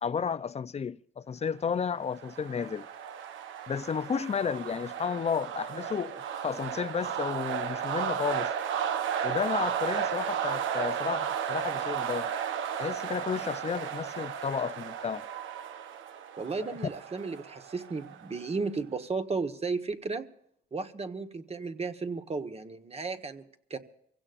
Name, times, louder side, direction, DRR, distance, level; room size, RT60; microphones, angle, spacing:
voice 1, 0.0-2.9 3.7-8.5 9.2-12.3 12.8-15.3 16.6-16.7, left 6 dB, 35° left, 0.6 m, -32 dB
sound 1, 1.8-18.5, right 8 dB, 75° right, 1.0 m, -34 dB
voice 2, 16.4-20.2 20.7-23.8, right 4 dB, 30° right, 1.4 m, -34 dB
25.0 x 16.0 x 2.6 m
cardioid pair, 90°, 20 cm